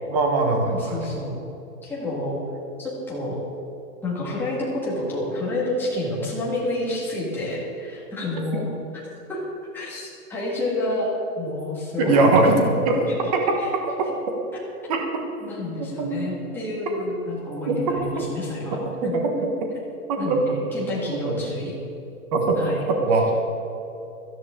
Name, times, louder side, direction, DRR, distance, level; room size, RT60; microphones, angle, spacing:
voice 1, 0.1-1.0 12.0-12.5 12.8-13.0 13.3-13.4 14.9-15.0 16.0-16.4 17.7-17.8 19.2-19.3 20.1-20.4 21.2-21.4 22.3-22.6 22.9-23.3, right 3 dB, 25° right, 2 dB, 1.3 m, -21 dB
voice 2, 0.7-1.4 1.8-2.4 2.8-3.4 4.0-8.7 9.3-9.4 9.7-12.7 13.1-13.2 13.6-13.7 15.4-19.1 20.2-21.8 22.6-22.8, left 1 dB, 5° left, -7 dB, 1.8 m, -29 dB
17.0 x 14.0 x 3.7 m, 3.0 s
hypercardioid pair, 175°, 46 cm